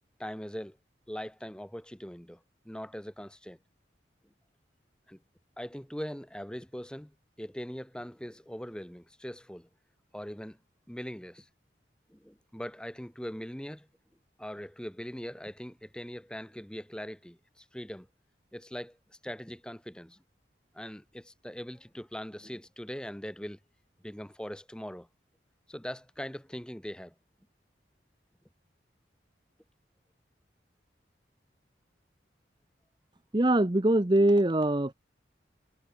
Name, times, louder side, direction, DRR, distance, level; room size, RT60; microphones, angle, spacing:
voice 1, 0.2-0.8 1.1-2.4 2.6-3.6 5.1-5.2 5.6-7.1 7.4-9.7 10.1-10.6 10.9-11.5 12.1-13.9 14.4-18.1 18.5-19.0 19.2-20.2 20.7-23.6 24.0-25.1 25.7-27.1, equal, 5° left, 1.0 m, -41 dB
voice 2, 33.3-34.9, right 1 dB, 25° right, 0.8 m, -23 dB
head